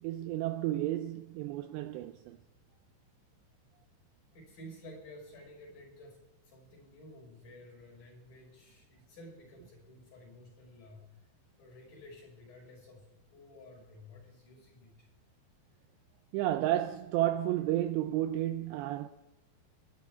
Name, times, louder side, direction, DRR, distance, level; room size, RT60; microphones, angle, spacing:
voice 1, 0.0-2.4 16.3-19.1, right 13 dB, 85° right, 2.6 m, -32 dB
voice 2, 4.3-11.0 11.6-13.1 13.3-15.1, left 1 dB, 45° left, 6.9 m, -52 dB
23.0 x 12.5 x 3.7 m
omnidirectional pair, 5.5 m